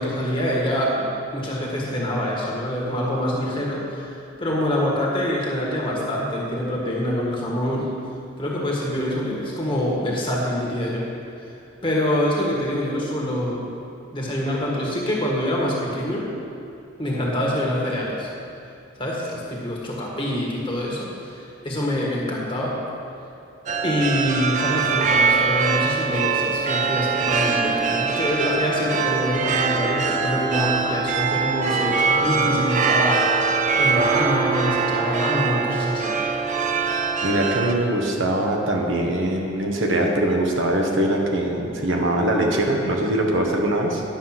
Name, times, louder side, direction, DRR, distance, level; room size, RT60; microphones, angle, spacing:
voice 1, 0.0-7.9 8.4-11.1 11.4-11.5 11.8-13.7 14.1-16.3 17.0-18.3 19.0-22.8 23.8-36.1, equal, 25° left, -3 dB, 1.7 m, -25 dB
sound 1, 23.7-37.7, right 5 dB, 35° right, 0.5 m, -22 dB
Wind instrument woodwind instrument, 30.9-36.3, right 4 dB, 5° left, 1.0 m, -40 dB
voice 2, 37.2-44.0, right 1 dB, 65° right, 0 dB, 1.2 m, -22 dB
10.5 x 7.2 x 5.9 m, 2.5 s
head